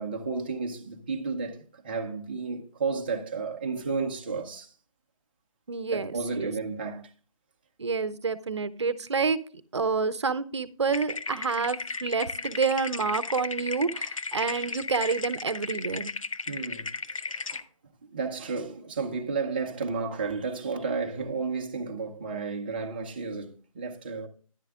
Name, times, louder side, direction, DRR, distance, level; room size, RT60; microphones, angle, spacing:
voice 1, 0.0-4.7 5.9-7.1 16.5-16.9 17.3-17.6 18.1-24.3, right 4 dB, 15° right, 0.7 m, -32 dB
voice 2, 5.7-6.5 7.8-9.4 9.7-16.1, right 5 dB, 50° right, 0.7 m, -28 dB
sound 1, 10.9-17.6, left 4 dB, 70° left, 0.7 m, -35 dB
10.5 x 10.5 x 2.4 m
figure-of-eight pair, 165°, 18 cm